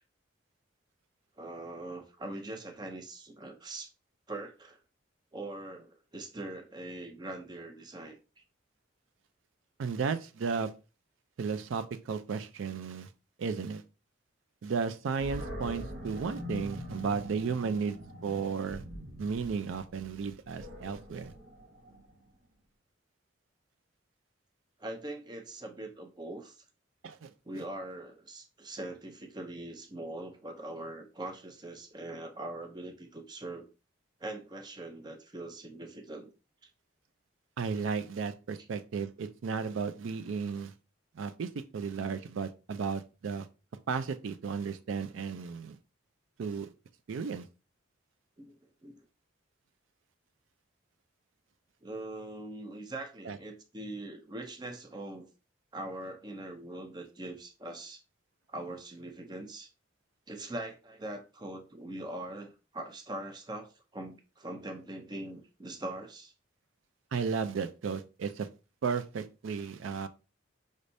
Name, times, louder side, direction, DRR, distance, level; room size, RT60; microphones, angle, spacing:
voice 1, 1.4-3.9 4.3-4.8 5.3-8.2 24.8-26.6 27.5-33.7 34.2-36.3 37.7-37.8 48.4-48.6 48.8-49.0 51.8-55.3 55.7-58.0 58.5-59.7 60.3-66.3, right 1 dB, 20° right, 0.5 m, -42 dB
voice 2, 9.8-10.7 11.4-13.1 13.4-13.8 14.6-18.0 18.2-18.8 19.2-21.3 27.0-27.3 37.6-40.7 41.2-43.5 43.9-45.8 46.4-46.7 47.1-47.5 53.2-53.4 67.1-68.5 68.8-70.1, right 5 dB, 80° right, 0.4 m, -34 dB
Animal, 15.2-22.3, equal, 60° right, 1.1 m, -43 dB
5.2 x 3.3 x 2.6 m
head